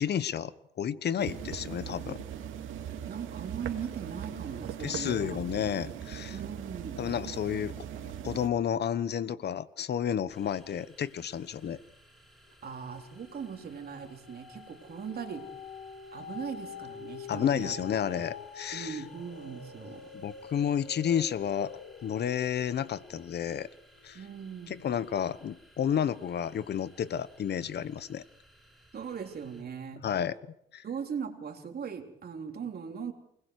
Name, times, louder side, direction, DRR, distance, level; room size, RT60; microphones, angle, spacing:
voice 1, 0.0-2.2 4.8-6.4 7.0-7.7 8.0-11.8 17.3-19.0 20.1-21.7 22.0-23.7 24.0-24.2 24.7-28.2 30.0-30.4 30.7-30.8, left 9 dB, 55° left, 16 dB, 1.2 m, -31 dB
sound 1, 1.2-8.5, right 9 dB, 80° right, 2.4 m, -40 dB
voice 2, 2.8-5.4 6.3-7.1 12.6-15.6 16.1-17.8 18.2-18.3 18.7-20.1 24.1-24.8 28.9-30.1 30.8-33.1, right 7 dB, 50° right, 4 dB, 3.6 m, -39 dB
sound 2, 10.3-29.6, right 1 dB, ahead, 6.5 m, -60 dB
sound 3, 11.6-12.1 12.5-25.0 25.5-25.6, left 6 dB, 80° left, 5.0 m, -47 dB
28.5 x 20.5 x 4.8 m, 0.72 s
cardioid pair, 90°, 20 cm